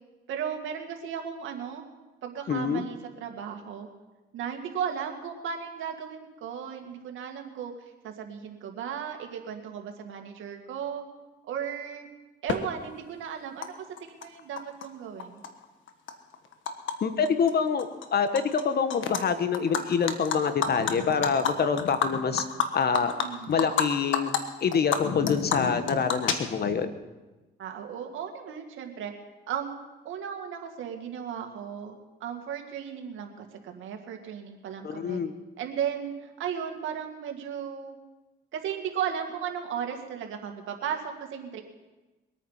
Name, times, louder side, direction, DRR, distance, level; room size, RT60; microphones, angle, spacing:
voice 1, 0.3-1.8 2.2-3.9 4.3-11.0 11.4-12.1 12.4-15.4 23.2-23.6 27.6-29.1 29.5-29.7 30.0-35.2 35.6-38.0 38.5-41.6, right 8 dB, 80° right, 4 dB, 2.2 m, -35 dB
voice 2, 2.5-2.8 17.0-22.4 22.7-23.1 23.5-24.3 24.6-26.9 34.8-35.3, left 6 dB, 55° left, 10 dB, 1.3 m, -26 dB
Animal, 12.5-12.6 13.6-13.7 14.0-14.9 15.2-16.9 17.3-17.5 17.8-18.6 18.9-19.2 19.5-23.9 24.1-24.4 24.7-26.8, left 7 dB, 75° left, 1.5 m, -29 dB
23.0 x 9.3 x 5.7 m, 1.1 s
cardioid pair, 90°, 20 cm